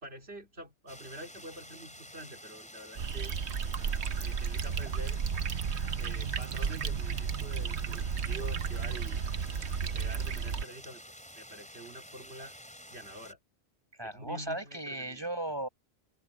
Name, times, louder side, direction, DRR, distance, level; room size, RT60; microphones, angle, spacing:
voice 1, 0.0-3.3 4.2-5.2 6.0-11.0 11.3-12.5 12.9-13.4 14.0-15.3, right 1 dB, 75° right, 3.4 m, -47 dB
sound 1, 0.9-13.3, equal, 5° left, 5.0 m, -50 dB
sound 2, 3.0-10.6, right 6 dB, 90° right, 1.2 m, -33 dB
voice 2, 13.9-15.7, right 1 dB, 25° right, 6.6 m, -36 dB
omnidirectional pair, 1.1 m